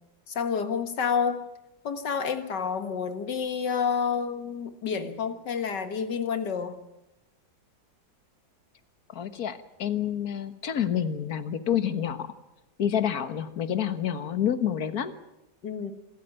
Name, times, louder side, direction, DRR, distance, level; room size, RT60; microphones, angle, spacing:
voice 1, 0.3-1.5 1.8-6.8 15.6-15.9, left 6 dB, 80° left, 9 dB, 2.3 m, -29 dB
voice 2, 9.1-12.3 12.8-15.1, left 9 dB, 60° left, 11 dB, 1.8 m, -28 dB
27.0 x 14.5 x 9.1 m, 0.92 s
omnidirectional pair, 1.9 m